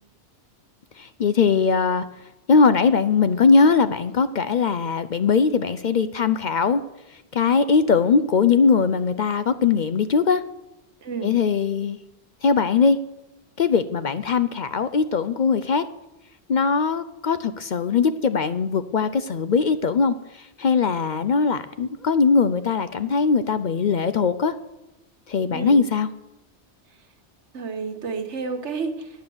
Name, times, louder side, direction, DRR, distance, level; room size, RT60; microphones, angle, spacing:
voice 1, 1.0-2.1 2.5-6.8 7.3-10.4 11.2-12.0 12.4-13.0 13.6-15.9 16.5-24.5 25.3-26.1, left 5 dB, 55° left, 12 dB, 0.5 m, -20 dB
voice 2, 11.0-11.3 25.5-25.8 27.5-29.1, right 4 dB, 85° right, 6 dB, 1.5 m, -30 dB
9.6 x 9.0 x 7.0 m, 0.92 s
omnidirectional pair, 1.2 m